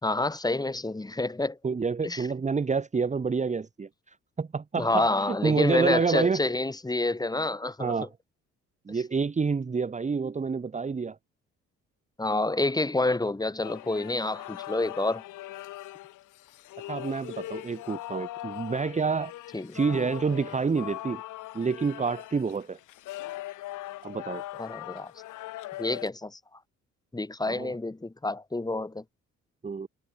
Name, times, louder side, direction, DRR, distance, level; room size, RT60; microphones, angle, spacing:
voice 1, 0.0-1.6 2.0-2.2 4.8-7.9 8.9-9.0 12.2-15.2 19.5-19.8 24.6-25.1 25.8-26.4 27.1-29.0, left 2 dB, 15° left, 1.8 m, -28 dB
voice 2, 1.6-6.5 7.8-8.1 8.9-11.2 16.9-19.3 19.7-21.2 21.5-22.8 24.0-24.4 27.4-27.7 29.6-29.9, right 5 dB, 25° right, 1.0 m, -28 dB
sound 1, 13.6-26.1, left 16 dB, 90° left, 2.5 m, -40 dB
cardioid pair, 90°, 30 cm